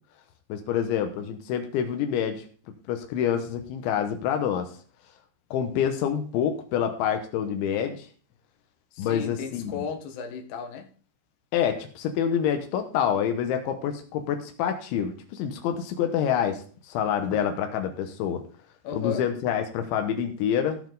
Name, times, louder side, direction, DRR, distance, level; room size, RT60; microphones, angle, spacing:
voice 1, 0.5-2.5 2.9-4.7 5.5-8.1 9.0-9.7 11.5-18.4 18.9-20.8, left 8 dB, 90° left, 3.5 m, -27 dB
voice 2, 8.9-10.9 18.8-19.3, left 6 dB, 75° left, 3.5 m, -34 dB
16.0 x 7.1 x 4.0 m
omnidirectional pair, 5.2 m